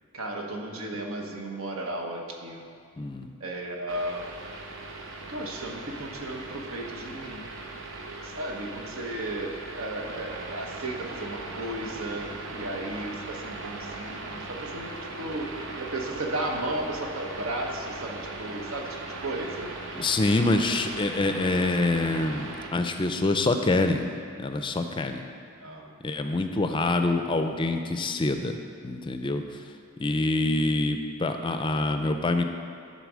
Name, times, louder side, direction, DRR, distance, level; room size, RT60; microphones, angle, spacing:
voice 1, 0.1-2.7 3.4-4.2 5.3-7.5 8.2-15.5 15.8-19.7 25.6-26.0, right 1 dB, 85° right, 1 dB, 1.1 m, -34 dB
voice 2, 3.0-3.3 20.0-24.1 24.4-25.2 26.0-28.6 28.8-29.4 30.0-32.4, left 2 dB, 25° left, 6 dB, 0.4 m, -26 dB
sound 1, 3.9-22.7, right 2 dB, 65° right, 0.9 m, -39 dB
11.5 x 4.1 x 6.2 m, 2.3 s
head